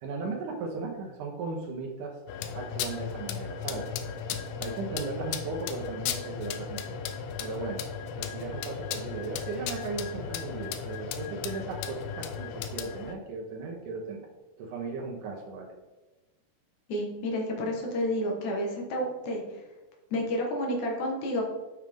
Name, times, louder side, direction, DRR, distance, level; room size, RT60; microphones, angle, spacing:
voice 1, 0.0-2.2 2.6-3.9 4.6-7.0 7.4-7.8 8.2-14.2 14.6-15.7, right 4 dB, 85° right, -1 dB, 1.8 m, -36 dB
sound 1, 2.3-13.1, left 7 dB, 80° left, 2.4 m, -36 dB
voice 2, 16.9-19.4 20.1-21.4, equal, 65° left, 0 dB, 1.9 m, -30 dB
7.2 x 6.3 x 3.6 m, 1.2 s
omnidirectional pair, 5.1 m